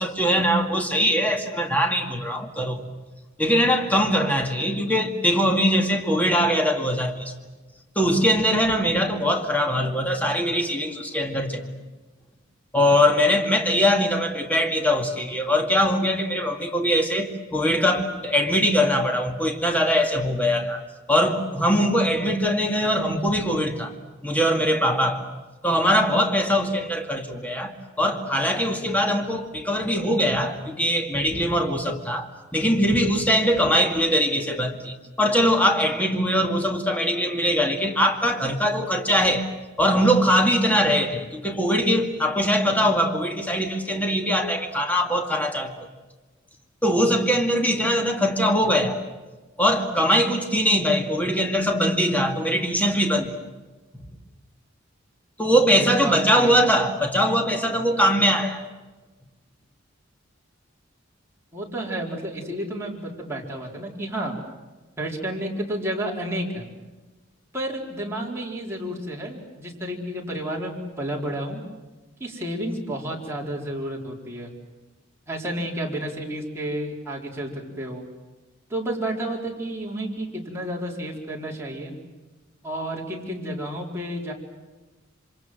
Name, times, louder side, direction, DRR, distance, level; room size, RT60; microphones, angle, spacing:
voice 1, 0.0-2.8 3.4-7.3 8.0-11.6 12.7-20.8 21.1-23.9 24.2-25.2 25.6-27.7 28.0-32.3 32.5-39.4 39.8-45.7 46.8-49.0 49.6-53.3 55.4-58.6, equal, 10° left, 4 dB, 2.1 m, -22 dB
voice 2, 55.7-56.8 61.5-64.4 65.0-66.7 67.5-71.6 72.2-74.5 75.3-78.0 78.7-81.9 82.6-84.3, right 1 dB, 15° right, -2 dB, 4.5 m, -31 dB
27.0 x 25.5 x 7.8 m, 1.2 s
head